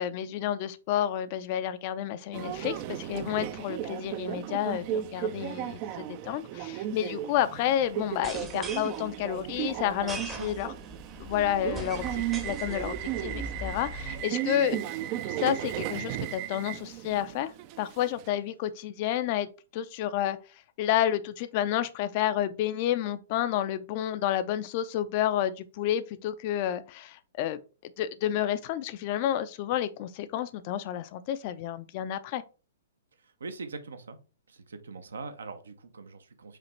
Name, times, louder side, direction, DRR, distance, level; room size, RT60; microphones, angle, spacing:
voice 1, 0.0-10.7 11.2-14.8 15.4-20.4 20.8-32.4, left 11 dB, 40° left, 0.4 m, -30 dB
Subway metro underground, 2.3-18.3, right 11 dB, 40° right, 0.4 m, -35 dB
sound 1, 8.1-14.2, right 1 dB, 15° right, 0.7 m, -41 dB
voice 2, 33.2-34.2 34.5-36.6, right 4 dB, 70° right, 0.7 m, -42 dB
5.0 x 2.8 x 3.1 m
figure-of-eight pair, 115°, 0 cm